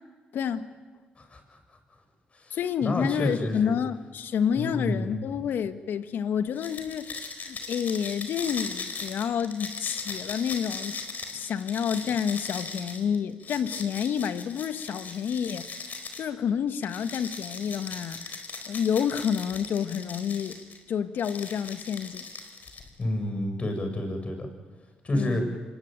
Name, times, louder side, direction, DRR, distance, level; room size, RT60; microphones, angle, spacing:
voice 1, 0.3-0.7 2.5-11.0 11.3-15.7 16.2-20.6 20.9-22.2 25.1-25.6, left 8 dB, 70° left, 1.5 m, -29 dB
voice 2, 1.2-1.6 2.3-3.7 4.6-5.2 23.0-24.5 25.0-25.4, left 1 dB, 35° left, 7.4 m, -30 dB
sound 1, 6.5-16.3 16.8-20.8 21.2-23.0, left 4 dB, 55° left, 4.5 m, -39 dB
25.0 x 21.5 x 9.2 m
supercardioid pair, 65°, 4 cm